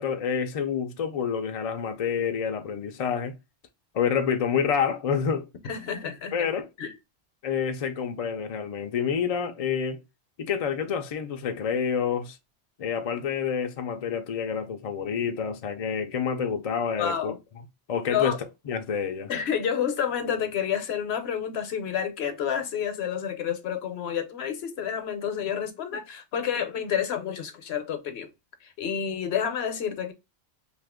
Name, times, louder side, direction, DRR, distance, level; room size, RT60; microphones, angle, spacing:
voice 1, 0.0-3.3 3.9-5.5 6.3-6.7 7.4-10.0 10.4-12.4 12.8-17.3 17.9-18.4 18.7-19.3, left 7 dB, 55° left, 0.4 m, -28 dB
voice 2, 5.6-6.5 6.8-6.9 17.0-17.4 18.1-18.4 19.3-28.3 28.8-30.1, left 8 dB, 75° left, 0.9 m, -29 dB
2.7 x 2.4 x 3.4 m
omnidirectional pair, 1.1 m